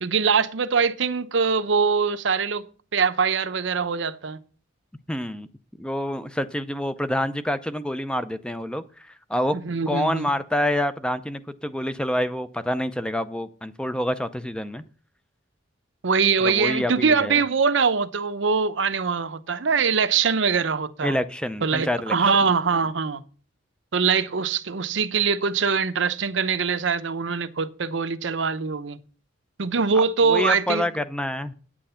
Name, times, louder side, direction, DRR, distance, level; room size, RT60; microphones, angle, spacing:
voice 1, 0.0-2.6 2.9-4.4 9.5-10.3 16.0-21.2 21.6-23.2 23.9-29.0 29.6-30.8, right 5 dB, 75° right, 0.7 m, -23 dB
voice 2, 5.1-5.5 5.8-9.6 9.9-14.8 16.4-17.4 21.0-22.3 29.9-31.5, left 1 dB, 5° left, 0.5 m, -27 dB
8.9 x 8.6 x 5.7 m
head